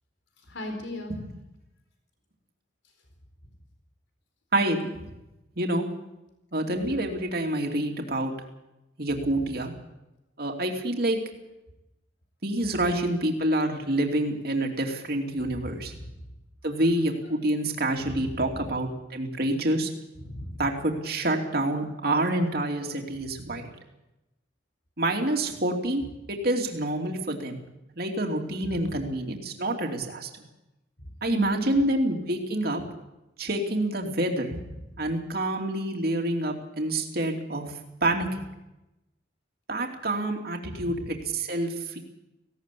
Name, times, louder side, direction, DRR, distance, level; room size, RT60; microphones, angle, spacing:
voice 1, 0.5-1.1 18.0-18.4 20.2-20.6 28.7-28.8 31.3-31.7 40.6-40.9, right 1 dB, 85° left, 3 dB, 4.5 m, -34 dB
voice 2, 4.5-5.1 5.6-5.9 6.5-8.3 9.0-9.7 10.4-11.2 12.4-15.9 16.6-19.9 20.6-23.7 25.0-26.0 26.3-27.6 28.0-30.3 31.2-32.8 33.4-34.6 35.0-37.7 38.0-38.4 39.7-42.0, right 1 dB, 55° right, 2 dB, 2.8 m, -27 dB
18.5 x 17.0 x 8.4 m, 0.94 s
head